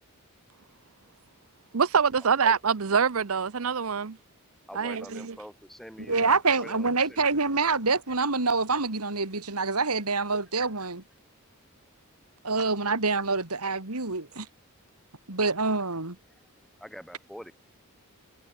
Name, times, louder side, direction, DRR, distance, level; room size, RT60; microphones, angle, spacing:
voice 1, 1.7-4.2 4.7-5.4, right 6 dB, 70° right, 0.7 m, -25 dB
voice 2, 4.7-7.6 16.8-17.5, equal, ahead, 4.5 m, -46 dB
voice 3, 6.1-11.0 12.4-14.5 15.3-16.1, right 4 dB, 90° right, 3.4 m, -26 dB
head